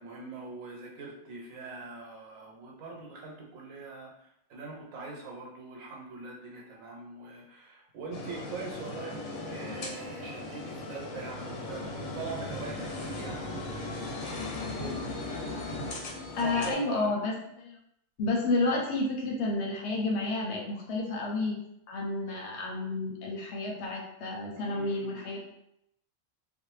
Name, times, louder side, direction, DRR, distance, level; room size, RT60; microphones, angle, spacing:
voice 1, 0.0-14.0 14.6-15.0 16.4-17.2 24.6-25.3, right 4 dB, 85° right, -1 dB, 1.1 m, -42 dB
sound 1, 8.1-16.7, left 2 dB, 90° left, 1.0 m, -37 dB
voice 2, 16.3-17.8 18.2-21.6 21.9-25.5, left 2 dB, 65° left, 0 dB, 0.8 m, -31 dB
2.6 x 2.0 x 3.1 m, 0.77 s
omnidirectional pair, 1.4 m